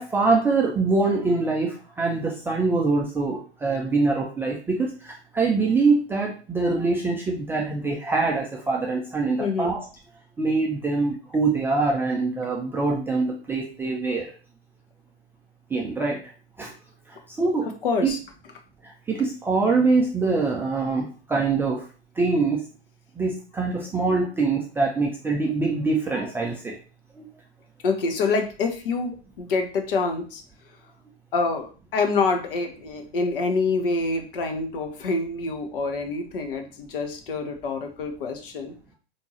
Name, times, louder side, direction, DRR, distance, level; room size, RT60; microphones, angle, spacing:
voice 1, 0.0-9.8 10.4-14.3 15.7-16.2 16.6-16.7 17.4-17.7 18.0-18.1 19.1-21.8 22.2-22.6 23.2-26.8 27.2-27.3, right 3 dB, 5° right, -2 dB, 0.4 m, -24 dB
voice 2, 9.4-9.8 17.8-18.2 27.8-30.4 31.3-38.7, left 4 dB, 55° left, 5 dB, 1.0 m, -26 dB
5.2 x 2.7 x 3.0 m, 0.38 s
figure-of-eight pair, 95°, 32 cm